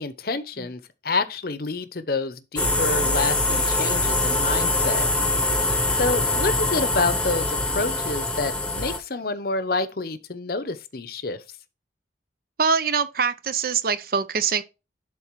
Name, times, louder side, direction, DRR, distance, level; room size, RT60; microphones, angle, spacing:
voice 1, 0.0-5.1 6.0-11.4, left 3 dB, 55° left, 0.8 m, -28 dB
sound 1, 2.6-9.0, left 2 dB, 5° left, 0.9 m, -23 dB
voice 2, 12.6-14.6, right 5 dB, 50° right, 0.6 m, -23 dB
11.0 x 3.9 x 4.7 m
head